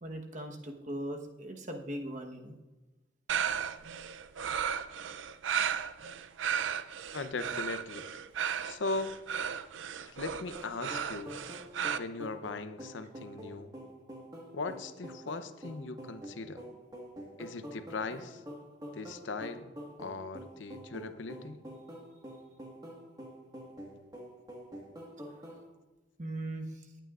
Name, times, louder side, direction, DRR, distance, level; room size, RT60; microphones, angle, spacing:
voice 1, 0.0-2.6 26.2-26.9, right 1 dB, 40° right, 3 dB, 1.1 m, -39 dB
sound 1, 3.3-12.0, right 8 dB, 85° right, 0.4 m, -35 dB
voice 2, 7.1-8.1 8.6-9.1 10.0-11.4 11.9-13.8 14.5-16.6 17.4-18.4 18.9-19.7 20.0-21.6, left 3 dB, 85° left, 11 dB, 0.7 m, -39 dB
sound 2, 10.5-25.6, equal, 20° right, 1.5 m, -47 dB
18.0 x 9.0 x 2.4 m, 1.1 s
head